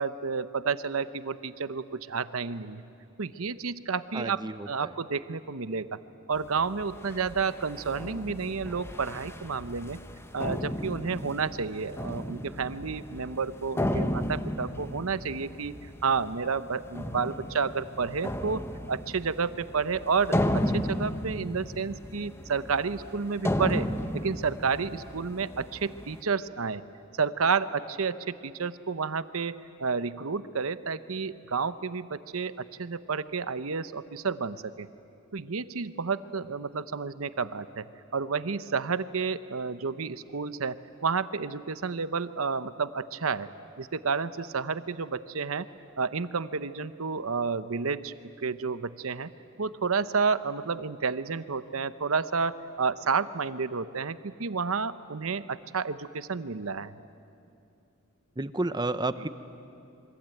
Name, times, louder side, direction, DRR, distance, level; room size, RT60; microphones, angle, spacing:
voice 1, 0.0-2.8 3.2-4.4 4.7-6.0 6.3-10.0 10.3-18.6 18.9-23.9 24.1-26.8 27.2-34.9 35.3-37.9 38.1-43.5 43.8-45.7 46.0-48.1 48.4-49.3 49.6-57.0, right 5 dB, 75° right, 13 dB, 0.9 m, -30 dB
voice 2, 4.1-4.9 58.4-59.3, right 2 dB, 20° right, 12 dB, 0.7 m, -31 dB
sound 1, 6.3-26.2, left 1 dB, 10° left, 1.0 m, -34 dB
27.5 x 23.5 x 9.2 m, 2.7 s
head